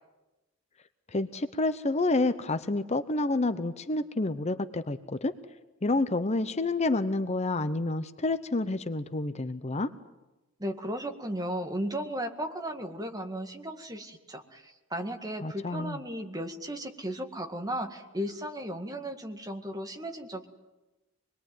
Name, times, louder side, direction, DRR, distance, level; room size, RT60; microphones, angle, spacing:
voice 1, 1.1-5.3 5.8-9.9 15.4-16.0, left 2 dB, 35° left, 11 dB, 0.8 m, -29 dB
voice 2, 10.6-20.5, right 1 dB, 20° right, 5 dB, 2.0 m, -35 dB
26.0 x 21.5 x 9.3 m, 1.0 s
head